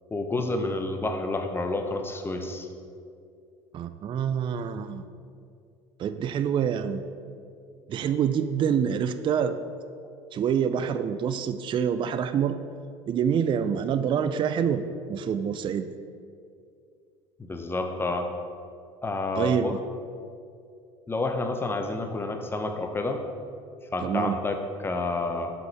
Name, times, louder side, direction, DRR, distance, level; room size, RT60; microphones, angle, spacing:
voice 1, 0.1-2.7 17.4-18.3 19.0-19.8 21.1-23.2 23.9-25.5, left 2 dB, 15° left, 5 dB, 0.8 m, -29 dB
voice 2, 3.7-5.0 6.0-7.0 7.9-9.6 10.3-12.6 13.1-15.9 19.4-19.8 24.0-24.4, right 8 dB, 35° right, 10 dB, 0.3 m, -26 dB
5.8 x 5.5 x 4.5 m, 2.4 s
hypercardioid pair, 75°, 15 cm